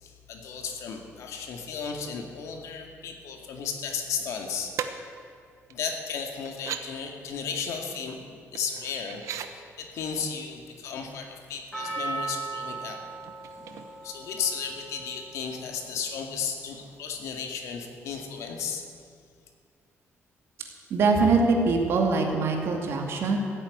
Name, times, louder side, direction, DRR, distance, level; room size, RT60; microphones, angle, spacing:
voice 1, 0.0-4.7 5.7-9.2 9.5-13.0 14.0-18.8, left 6 dB, 80° left, 3 dB, 2.1 m, -34 dB
sound 1, 4.8-4.9 5.7-5.8 6.4-6.8 8.6-9.5 11.2-11.4 11.7-12.2 13.2-14.2 14.5-14.7, right 9 dB, 85° right, 0.9 m, -37 dB
Percussion, 11.7-16.1 16.7-16.8, right 3 dB, 10° left, 4.6 m, -37 dB
voice 2, 20.9-23.4, right 4 dB, 55° right, 2 dB, 2.3 m, -23 dB
15.0 x 9.0 x 9.2 m, 2.2 s
cardioid pair, 180°, 5 cm